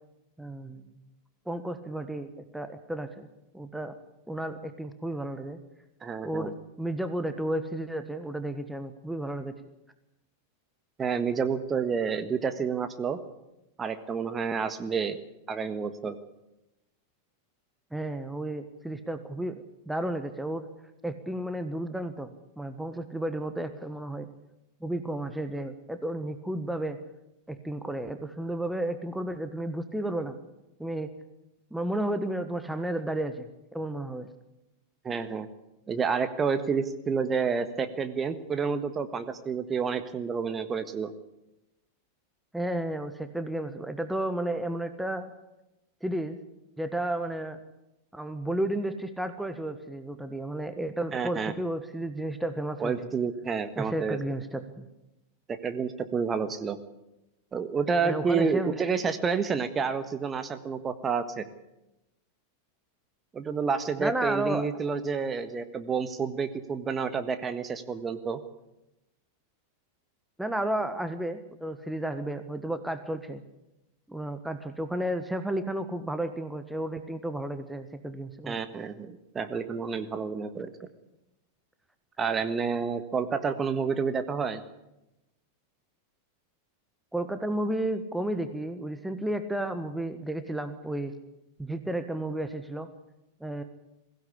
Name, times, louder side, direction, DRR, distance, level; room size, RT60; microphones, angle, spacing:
voice 1, 0.4-0.9 1.5-3.3 3.5-3.9 4.3-5.6 6.2-9.5 17.9-20.7 21.0-24.3 24.8-27.0 27.5-30.4 30.8-31.1 31.7-34.3 42.5-45.3 46.0-46.4 46.8-47.6 48.1-52.9 53.8-54.9 58.0-58.8 64.0-64.7 70.4-73.4 74.1-78.6 87.1-91.1 91.6-92.9 93.4-93.6, right 1 dB, 5° right, 9 dB, 1.4 m, -32 dB
voice 2, 6.0-6.5 11.0-13.2 13.8-15.2 15.5-16.2 35.0-35.5 35.9-41.1 51.1-51.5 52.8-54.2 55.6-56.8 57.5-61.5 63.3-68.4 78.5-80.7 82.2-84.6, right 5 dB, 20° right, 9 dB, 1.5 m, -29 dB
22.0 x 16.0 x 8.5 m, 0.93 s
figure-of-eight pair, 90°, 0 cm